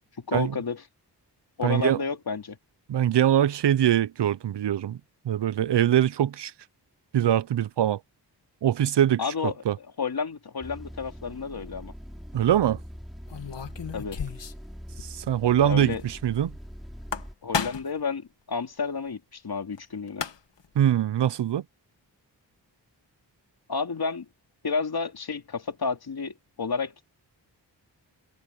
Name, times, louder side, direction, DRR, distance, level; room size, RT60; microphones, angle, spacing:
voice 1, 0.2-0.8 1.6-2.6 9.2-9.5 10.0-11.9 13.9-14.2 15.6-16.0 17.4-20.2 23.7-24.3 24.6-27.1, left 5 dB, 60° left, 2.9 m, -31 dB
voice 2, 1.6-2.0 2.9-5.0 5.2-6.5 7.1-8.0 8.6-9.8 12.3-12.8 15.0-16.5 20.8-21.6, right 10 dB, 75° right, 0.7 m, -23 dB
sound 1, 10.6-17.3, equal, ahead, 6.4 m, -42 dB
sound 2, 11.5-11.8 13.3-14.7 15.0-15.1 15.4-15.5 16.9-18.0 19.8-19.9 20.1-20.7, left 6 dB, 85° left, 2.3 m, -33 dB
cardioid pair, 65°, 42 cm